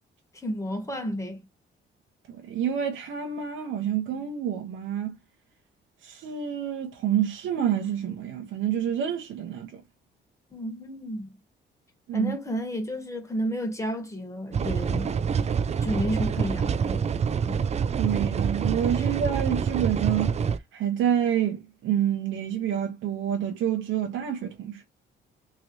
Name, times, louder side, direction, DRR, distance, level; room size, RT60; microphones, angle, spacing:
voice 1, 0.4-1.4 10.5-11.3 12.1-15.5 15.8-17.0 17.4-17.6 19.0-19.1, equal, 15° left, 1.5 m, -31 dB
voice 2, 2.3-5.1 6.0-9.8 12.1-12.3 18.0-20.4 20.7-24.8, right 9 dB, 75° right, 0.9 m, -28 dB
sound 1, 14.5-20.6, right 6 dB, 35° right, 0.4 m, -26 dB
3.1 x 3.0 x 2.6 m
cardioid pair, 90°, 20 cm